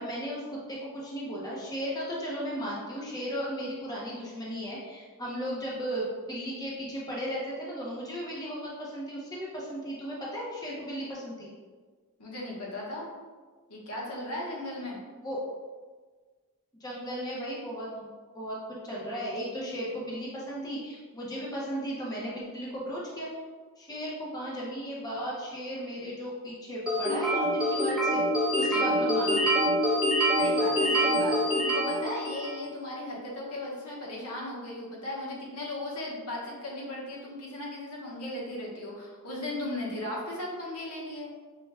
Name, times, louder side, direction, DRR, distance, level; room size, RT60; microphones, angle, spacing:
voice 1, 0.0-11.5 15.2-15.4 16.8-23.3 23.8-28.2 28.5-29.5, equal, 15° left, -5 dB, 0.7 m, -36 dB
voice 2, 12.2-13.1 13.7-15.0 28.7-28.9 30.4-41.3, left 1 dB, 80° left, -4 dB, 1.1 m, -37 dB
sound 1, 26.9-32.6, equal, 5° right, 1.0 m, -25 dB
5.4 x 2.2 x 3.3 m, 1.5 s
head